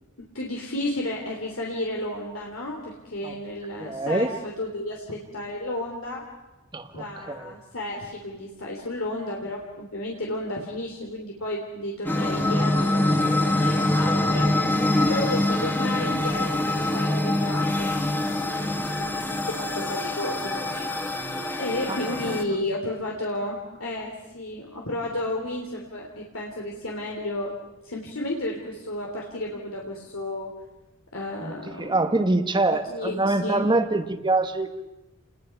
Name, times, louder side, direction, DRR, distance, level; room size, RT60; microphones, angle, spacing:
voice 1, 0.3-6.2 6.9-14.5 15.0-20.9 21.5-27.5 27.8-30.5 31.1-31.7 32.7-33.6, left 1 dB, 70° left, -1 dB, 3.2 m, -32 dB
voice 2, 3.8-4.3 6.7-7.5 21.9-22.3 31.4-34.8, right 2 dB, 20° right, 8 dB, 1.5 m, -25 dB
sound 1, 12.1-22.4, left 1 dB, 10° left, 1.7 m, -24 dB
29.5 x 20.5 x 5.9 m, 1.0 s
head